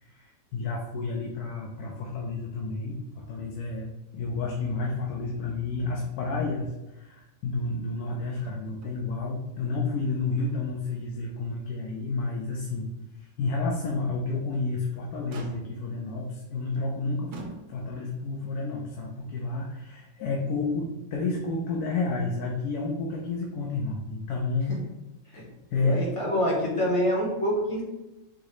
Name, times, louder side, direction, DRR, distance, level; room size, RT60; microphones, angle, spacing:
voice 1, 0.0-3.9 4.1-12.9 13.2-17.3 17.7-24.8 25.3-25.4 25.7-26.0, left 3 dB, 85° left, -1 dB, 1.1 m, -30 dB
Motor vehicle (road), 8.4-9.0 9.3-9.4 9.9-10.9 11.3-11.4 12.0-12.1 14.3-14.7 15.3-16.0 16.7-16.9 17.3-18.1 19.2-19.3, right 2 dB, 70° right, 0.4 m, -46 dB
voice 2, 25.8-27.8, equal, 30° left, -3 dB, 0.7 m, -26 dB
4.7 x 2.0 x 3.0 m, 1.0 s
omnidirectional pair, 1.6 m